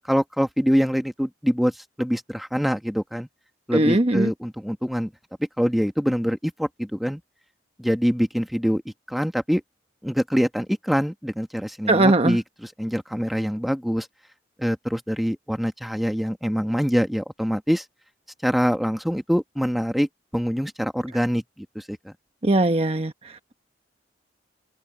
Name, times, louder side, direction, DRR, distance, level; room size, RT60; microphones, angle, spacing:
voice 1, 0.1-3.3 3.7-5.1 5.6-7.2 7.8-9.6 10.0-14.1 14.6-17.8 18.4-22.1, equal, ahead, 1.5 m, -24 dB
voice 2, 3.7-4.3 11.9-12.4 22.4-23.5, right 2 dB, 35° right, 1.1 m, -20 dB
open air
head